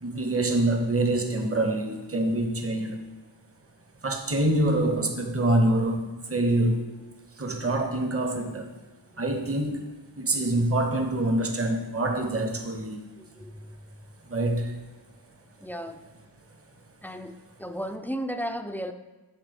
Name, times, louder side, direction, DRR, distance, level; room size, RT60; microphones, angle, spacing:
voice 1, 0.0-3.0 4.0-6.9 7.4-8.7 9.2-13.0 14.2-14.7, right 1 dB, 35° right, 5 dB, 0.8 m, -25 dB
voice 2, 10.3-10.7 13.2-13.8 15.6-16.0 17.0-18.9, equal, 5° left, 7 dB, 0.3 m, -35 dB
11.0 x 4.0 x 3.4 m, 1.1 s
wide cardioid pair, 55°, 42 cm